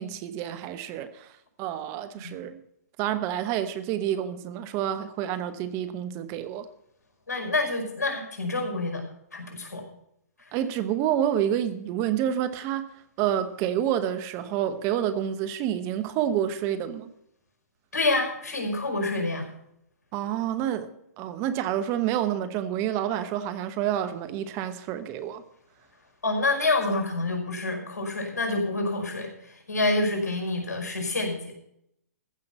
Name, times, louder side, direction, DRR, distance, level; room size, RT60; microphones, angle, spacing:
voice 1, 0.0-1.3 1.6-2.6 3.0-6.7 10.5-12.9 13.2-17.1 20.1-20.9 21.2-25.4, right 10 dB, 30° right, 1.0 m, -28 dB
voice 2, 7.3-9.0 9.3-9.8 17.9-19.5 26.2-29.3 29.7-31.5, left 2 dB, 75° left, 5.3 m, -27 dB
15.0 x 5.8 x 7.9 m
hypercardioid pair, 125°, 9 cm